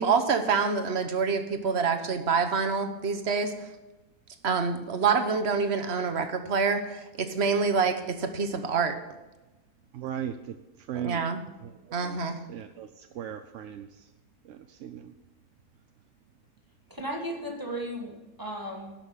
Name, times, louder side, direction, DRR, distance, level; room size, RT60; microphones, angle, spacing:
voice 1, 0.0-3.5 4.4-9.0 11.0-11.4 11.9-12.4, right 5 dB, 45° right, 7 dB, 1.1 m, -26 dB
voice 2, 9.9-11.2 11.6-12.2 12.5-14.1 14.4-15.1, right 10 dB, 65° right, 8 dB, 0.8 m, -38 dB
voice 3, 16.9-19.1, right 1 dB, 15° right, 0 dB, 1.6 m, -35 dB
12.0 x 5.9 x 7.4 m, 1.1 s
omnidirectional pair, 1.7 m